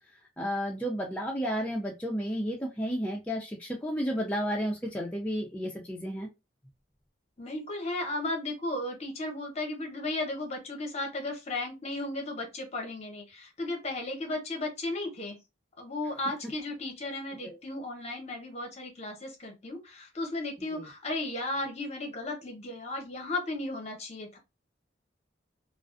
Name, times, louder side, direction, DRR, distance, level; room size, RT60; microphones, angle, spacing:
voice 1, 0.4-6.3 17.4-17.6 20.7-20.9, equal, 10° left, 0.3 m, -32 dB
voice 2, 7.4-15.4 15.8-24.4, left 2 dB, 35° left, 0.7 m, -35 dB
2.3 x 2.3 x 2.4 m
head